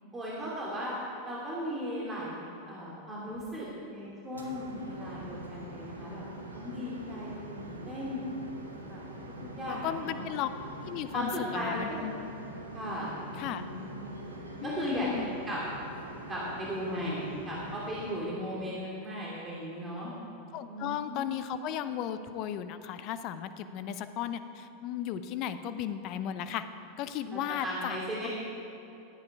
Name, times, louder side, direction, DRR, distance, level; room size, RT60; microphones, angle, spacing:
voice 1, 0.1-1.0 1.2-6.2 6.5-8.3 8.9-9.0 9.5-10.3 11.1-12.0 12.7-14.2 14.6-15.6 16.3-20.1 20.7-21.3 27.3-28.3, equal, 20° right, -6 dB, 2.6 m, -37 dB
sound 1, 4.3-18.2, right 1 dB, 90° right, 1.2 m, -44 dB
voice 2, 9.7-10.5 10.8-12.1 13.4-13.6 14.6-15.3 20.5-26.6 27.0-28.0 28.2-28.3, left 10 dB, 45° left, 11 dB, 0.6 m, -35 dB
12.5 x 9.6 x 4.7 m, 2.8 s
figure-of-eight pair, 90°, 0 cm